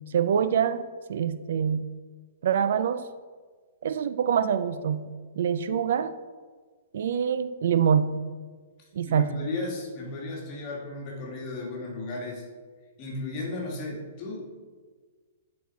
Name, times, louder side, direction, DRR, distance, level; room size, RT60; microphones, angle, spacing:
voice 1, 0.1-1.8 2.4-3.1 3.8-6.1 6.9-8.2 8.9-9.4, right 8 dB, 60° right, 13 dB, 0.3 m, -25 dB
voice 2, 9.0-12.4 13.0-14.4, left 2 dB, 30° left, -2 dB, 1.7 m, -34 dB
9.5 x 4.2 x 4.1 m, 1.5 s
hypercardioid pair, 165°, 0 cm